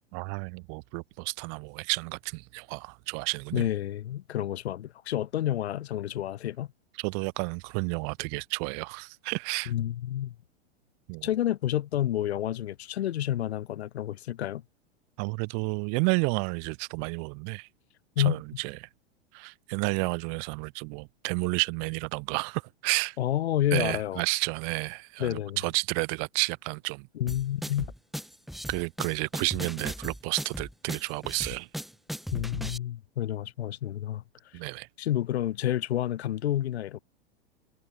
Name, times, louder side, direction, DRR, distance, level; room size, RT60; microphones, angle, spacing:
voice 1, 0.1-3.7 7.0-9.7 11.1-11.3 15.2-17.7 18.2-18.9 19.3-23.2 23.7-27.1 28.7-31.7 34.5-34.9, right 40 dB or more, 40° right, 0.7 m, -31 dB
voice 2, 3.5-6.7 9.7-10.4 11.2-14.6 18.2-18.4 23.2-24.2 25.2-25.6 27.1-27.9 32.3-34.2 35.0-37.0, left 12 dB, 70° left, 2.3 m, -29 dB
sound 1, 27.3-32.8, equal, ahead, 0.6 m, -37 dB
hypercardioid pair, 105°, 34 cm